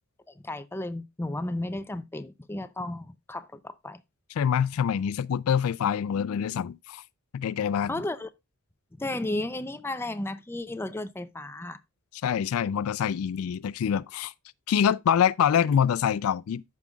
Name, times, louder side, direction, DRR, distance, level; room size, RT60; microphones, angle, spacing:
voice 1, 0.4-4.0 7.9-8.3 9.0-11.8, left 1 dB, 10° left, 0.5 m, -33 dB
voice 2, 4.4-7.0 7.3-8.0 12.2-14.3 14.7-16.6, left 8 dB, 75° left, 0.3 m, -25 dB
13.0 x 5.3 x 2.3 m
head